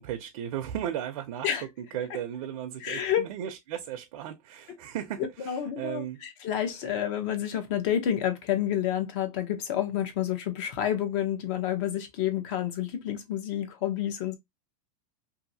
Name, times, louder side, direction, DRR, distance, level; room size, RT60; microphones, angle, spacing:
voice 1, 0.0-1.5 1.8-6.2, right 10 dB, 70° right, 0.5 m, -35 dB
voice 2, 2.8-3.3 5.4-14.4, left 10 dB, 55° left, 0.8 m, -29 dB
2.7 x 2.6 x 2.6 m
supercardioid pair, 145°, 18 cm